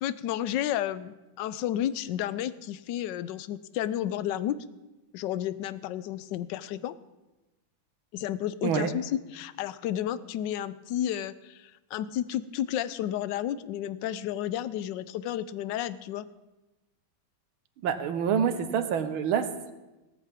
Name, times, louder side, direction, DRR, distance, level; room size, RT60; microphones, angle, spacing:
voice 1, 0.0-4.6 5.1-6.9 8.1-16.2, left 11 dB, 75° left, 15 dB, 1.1 m, -32 dB
voice 2, 17.8-19.7, right 7 dB, 90° right, 9 dB, 1.8 m, -27 dB
17.0 x 14.0 x 3.6 m, 1.1 s
omnidirectional pair, 2.2 m